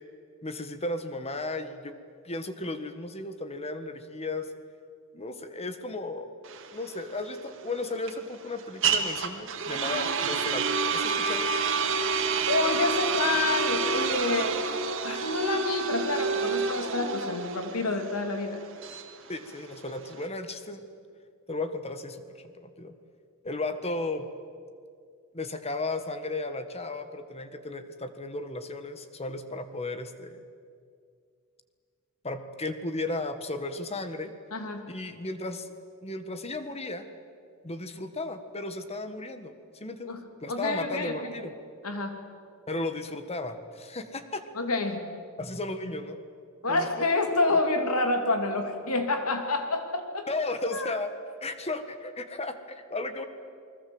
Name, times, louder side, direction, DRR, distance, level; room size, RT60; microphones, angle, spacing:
voice 1, 0.4-1.9 2.2-4.5 5.1-6.3 6.7-10.6 10.9-11.5 19.3-20.9 21.5-22.9 23.4-24.3 25.3-30.4 32.2-34.3 34.9-35.7 36.0-37.1 37.6-40.1 40.4-41.5 42.7-44.4 45.4-46.2 46.7-47.1 47.5-47.6 50.3-51.1 51.4-53.3, left 2 dB, 30° left, 9 dB, 1.6 m, -35 dB
sound 1, 6.4-20.3, right 5 dB, 65° right, 2.2 m, -29 dB
voice 2, 12.5-14.6 15.0-18.6 34.5-34.8 40.0-40.2 40.5-41.3 41.8-42.2 44.5-45.0 46.6-50.3 50.7-50.9, left 2 dB, 90° left, 5 dB, 3.0 m, -28 dB
29.0 x 21.0 x 8.0 m, 2.2 s
head